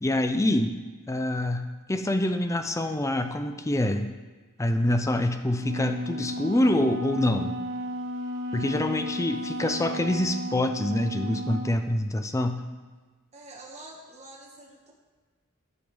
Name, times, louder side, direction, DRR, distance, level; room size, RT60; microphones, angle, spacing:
voice 1, 0.0-0.8 1.1-4.1 4.6-7.6 8.5-12.6, left 1 dB, 15° left, 7 dB, 0.4 m, -26 dB
Wind instrument woodwind instrument, 5.6-11.8, equal, 60° right, 0.8 m, -34 dB
voice 2, 13.3-14.9, right 2 dB, 30° right, -3 dB, 1.7 m, -46 dB
13.5 x 5.6 x 3.4 m, 1.3 s
head